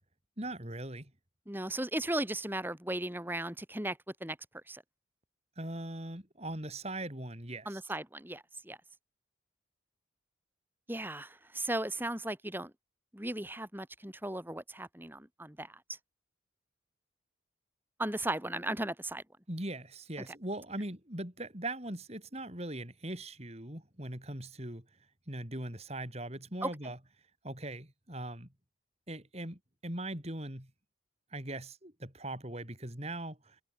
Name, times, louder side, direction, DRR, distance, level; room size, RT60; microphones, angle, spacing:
voice 1, 0.4-1.1 5.6-7.8 19.5-24.9 25.3-27.0 27.4-28.5 29.1-30.7 31.3-33.6, right 1 dB, 35° right, 5.2 m, -40 dB
voice 2, 1.5-4.4 4.7-4.8 7.7-8.8 10.9-12.7 13.1-16.0 18.0-19.2 26.6-26.7, right 1 dB, 10° right, 3.7 m, -36 dB
head